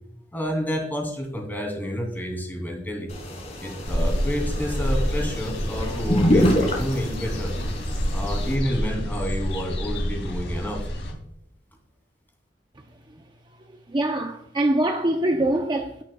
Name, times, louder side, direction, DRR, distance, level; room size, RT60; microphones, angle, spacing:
voice 1, 0.3-3.1 3.6-7.5 8.1-10.8, equal, 10° left, 2.7 m, -29 dB
sound 1, 3.1-8.5, equal, 40° left, 2.9 m, -26 dB
sound 2, 3.8-11.1, equal, 85° left, 2.8 m, -28 dB
voice 2, 13.9-16.0, right 1 dB, 25° right, 0.6 m, -23 dB
17.5 x 6.2 x 2.3 m
head